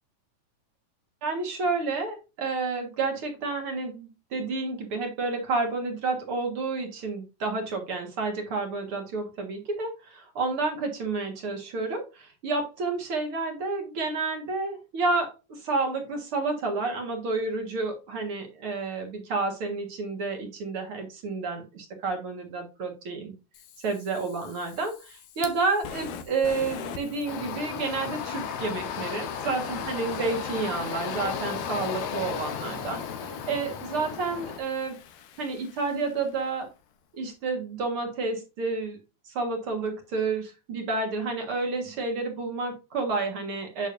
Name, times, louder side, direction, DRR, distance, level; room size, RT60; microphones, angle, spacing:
voice 1, 1.2-23.3 23.8-35.0 35.4-36.7 37.1-39.0 39.3-43.9, right 3 dB, 50° right, 3 dB, 2.2 m, -30 dB
Fire, 23.5-36.7, left 7 dB, 90° left, 2.6 m, -43 dB
sound 1, 27.3-34.6, left 7 dB, 70° left, 2.2 m, -35 dB
8.6 x 6.2 x 2.6 m, 0.28 s
omnidirectional pair, 3.6 m